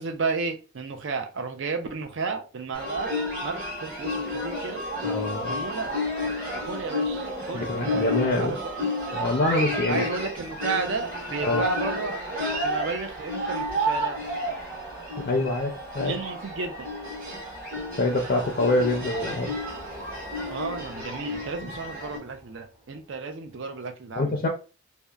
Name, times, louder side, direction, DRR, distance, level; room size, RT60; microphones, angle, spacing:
voice 1, 0.0-3.1 3.4-4.8 5.5-5.9 6.5-8.7 9.8-12.2 12.6-14.4 16.0-16.9 20.5-24.4, right 4 dB, 65° right, 5 dB, 0.5 m, -32 dB
sound 1, 2.7-22.2, left 1 dB, 45° right, 1.2 m, -31 dB
sound 2, 4.9-23.5, right 2 dB, 15° right, 0.9 m, -43 dB
voice 2, 5.0-5.6 7.5-8.6 9.1-10.0 11.4-11.6 15.2-16.1 18.0-19.5 24.2-24.5, left 2 dB, 45° left, 1 dB, 0.4 m, -25 dB
2.8 x 2.1 x 2.3 m, 0.33 s
head